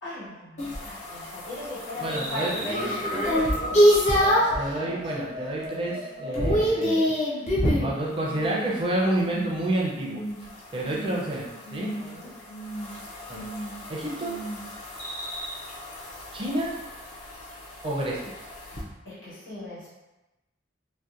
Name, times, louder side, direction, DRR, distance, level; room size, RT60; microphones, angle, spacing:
voice 1, 0.0-5.3 12.0-12.3 19.0-19.9, left 1 dB, 85° left, -10 dB, 1.4 m, -38 dB
sound 1, 0.6-4.6 5.1-5.6 5.8-7.9 10.4-18.8, equal, 40° left, 0.4 m, -27 dB
voice 2, 2.0-2.5 4.6-7.1 7.8-10.2 10.7-11.9 13.3-13.4 13.9-14.3 16.3-16.7 17.8-18.4, right 1 dB, 25° right, -4 dB, 0.4 m, -29 dB
sound 2, 2.1-7.1 7.4-7.9 8.2-8.8 9.1-9.5 9.9-10.5 10.8-11.3 11.6-12.1 12.5-12.9 13.3-13.8 14.2-14.6 15.0-15.5, equal, 65° left, 1.1 m, -36 dB
2.7 x 2.1 x 2.4 m, 1.0 s
head